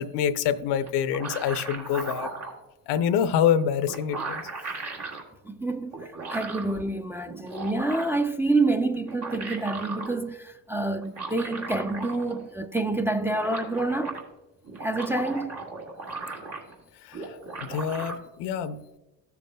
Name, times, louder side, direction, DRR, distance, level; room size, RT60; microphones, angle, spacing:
voice 1, 0.0-2.3 2.9-4.5 17.0-18.8, left 8 dB, 85° left, 0.7 m, -26 dB
sound 1, 0.9-2.6 3.5-3.6 3.9-5.2 5.9-6.7 7.3-8.3 8.9-10.1 11.0-12.5 12.8-12.9 13.1-14.2 14.6-16.8 17.1-18.1, right 3 dB, 75° right, 1.9 m, -36 dB
voice 2, 5.4-14.2 14.8-15.6, right 2 dB, 5° right, 0.3 m, -28 dB
14.0 x 6.9 x 2.2 m
supercardioid pair, 70°, 40 cm